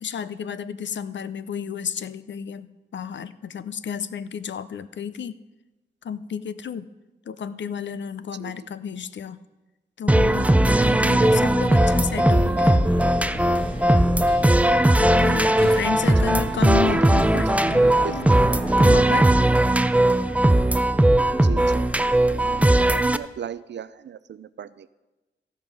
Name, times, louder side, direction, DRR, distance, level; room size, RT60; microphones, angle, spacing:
voice 1, 0.0-5.4 6.0-6.9 7.3-9.4 10.0-13.0 15.0-18.0 18.8-19.4, left 7 dB, 70° left, 15 dB, 0.5 m, -32 dB
sound 1, 10.1-23.2, right 1 dB, 5° right, 0.4 m, -18 dB
sound 2, 10.6-18.8, left 1 dB, 25° left, 1.5 m, -37 dB
voice 2, 16.7-17.6 18.0-18.2 21.4-21.9 22.4-24.9, right 9 dB, 65° right, 17 dB, 0.4 m, -36 dB
15.0 x 5.4 x 6.1 m, 1.1 s
cardioid pair, 65°, 20 cm